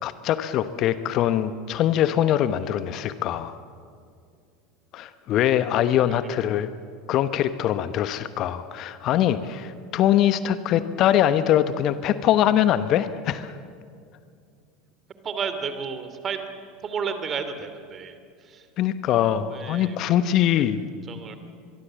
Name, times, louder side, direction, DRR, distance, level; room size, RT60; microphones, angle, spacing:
voice 1, 0.0-3.6 4.9-6.7 7.1-13.5 18.8-20.8, left 11 dB, 45° left, 13 dB, 1.0 m, -23 dB
voice 2, 15.2-16.4 16.8-18.1 18.4-18.7 19.5-20.2 20.5-20.7 21.1-21.4, right 6 dB, 35° right, 9 dB, 2.8 m, -32 dB
24.0 x 23.0 x 7.6 m, 2.3 s
figure-of-eight pair, 75°, 0 cm